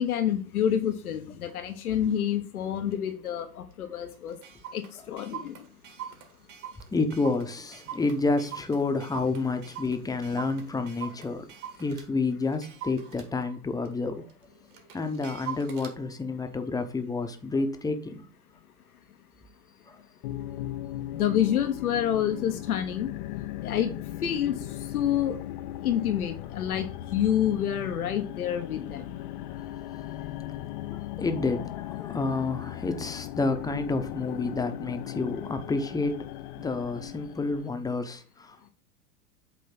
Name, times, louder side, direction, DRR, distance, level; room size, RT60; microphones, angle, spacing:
voice 1, 0.0-4.4 4.7-5.5 21.1-23.1 23.6-23.9 24.2-24.6 24.9-25.3 25.8-29.0, left 10 dB, 75° left, 1.0 m, -28 dB
Clock, 1.5-1.6 2.1-2.3 2.9-3.0 3.3-3.4 3.7-3.8 4.1-12.1 12.5-16.0, right 9 dB, 45° right, 1.7 m, -43 dB
voice 2, 6.9-11.5 11.8-14.3 14.9-18.3 19.9-20.0 30.9-36.2 36.6-38.7, left 3 dB, 10° left, 0.8 m, -29 dB
sound 1, 20.2-37.7, left 13 dB, 35° left, 0.4 m, -38 dB
8.2 x 3.1 x 5.7 m
hypercardioid pair, 100°, 44 cm